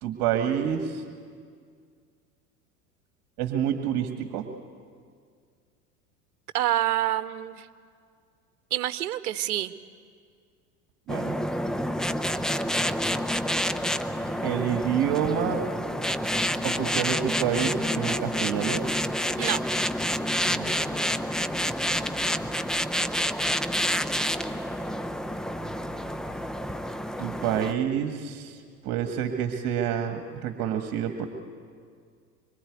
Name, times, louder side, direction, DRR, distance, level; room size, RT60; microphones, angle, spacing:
voice 1, 0.0-1.0 3.4-4.5 11.1-11.4 14.4-15.6 16.6-18.8 20.4-20.8 27.2-28.6 28.8-31.3, right 9 dB, 45° right, 6 dB, 1.9 m, -28 dB
voice 2, 6.5-7.7 8.7-9.7 19.4-19.6, right 13 dB, 65° right, 13 dB, 1.1 m, -27 dB
sound 1, 11.1-27.7, equal, ahead, 0.6 m, -28 dB
25.0 x 24.0 x 9.5 m, 2.1 s
figure-of-eight pair, 80°, 48 cm